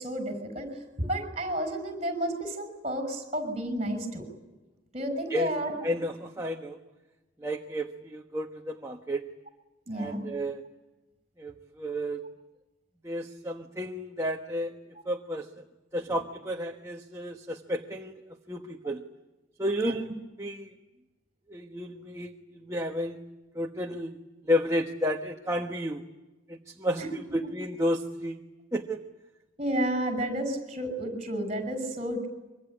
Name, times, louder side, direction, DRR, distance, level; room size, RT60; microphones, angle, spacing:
voice 1, 0.0-4.2 4.9-5.9 9.9-10.3 16.0-16.1 19.9-20.0 27.0-27.5 29.6-32.3, right 1 dB, 30° right, 9 dB, 6.0 m, -31 dB
voice 2, 5.8-6.8 7.4-9.2 9.9-10.6 11.4-12.2 13.0-14.7 15.0-15.6 15.9-18.2 18.5-19.0 19.6-20.1 20.4-20.7 21.5-23.2 23.5-24.2 24.4-26.0 26.5-28.4 28.7-29.0, equal, 15° right, 2 dB, 1.2 m, -32 dB
24.5 x 24.5 x 9.9 m, 1.1 s
head